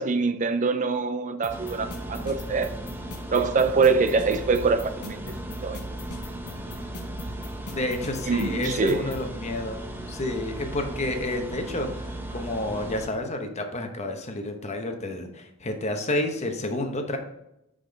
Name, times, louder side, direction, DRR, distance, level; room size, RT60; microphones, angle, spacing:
voice 1, 0.0-2.7 3.3-5.2 5.6-5.8 8.3-9.1, right 4 dB, 35° right, 0.4 m, -24 dB
sound 1, 1.4-9.2, left 3 dB, 90° left, 1.0 m, -41 dB
sound 2, 1.5-13.1, right 1 dB, 10° right, 0.8 m, -36 dB
voice 2, 7.7-9.8 10.1-17.2, left 1 dB, 30° left, 0.9 m, -30 dB
5.9 x 5.0 x 5.1 m
head